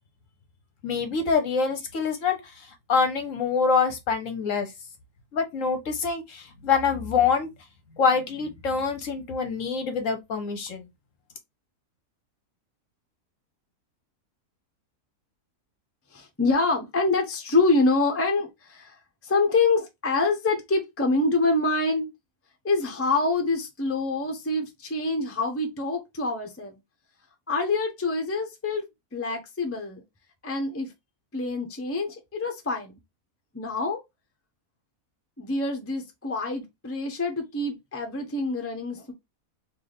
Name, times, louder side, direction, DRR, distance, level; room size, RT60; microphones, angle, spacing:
voice 1, 0.8-2.4 2.9-4.7 5.3-7.5 8.0-10.8, left 5 dB, 60° left, 1.0 m, -25 dB
voice 2, 16.1-22.1 22.6-26.8 27.5-30.0 30.4-30.9 31.3-33.0 33.5-34.0 35.4-39.1, left 3 dB, 15° left, 0.5 m, -26 dB
3.3 x 2.7 x 3.9 m
omnidirectional pair, 1.7 m